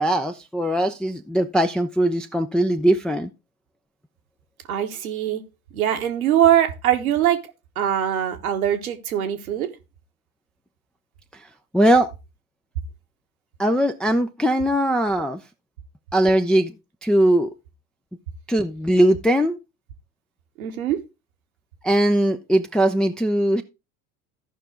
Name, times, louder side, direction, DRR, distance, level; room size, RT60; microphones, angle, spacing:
voice 1, 0.0-3.3 11.7-12.1 13.6-15.4 16.1-16.7 17.0-17.5 18.5-19.6 21.8-23.6, right 1 dB, ahead, 5 dB, 0.5 m, -20 dB
voice 2, 4.7-5.4 5.7-7.4 7.7-9.7 20.6-21.0, right 11 dB, 75° right, 6 dB, 1.4 m, -22 dB
14.0 x 5.5 x 3.6 m, 0.26 s
hypercardioid pair, 75°, 43 cm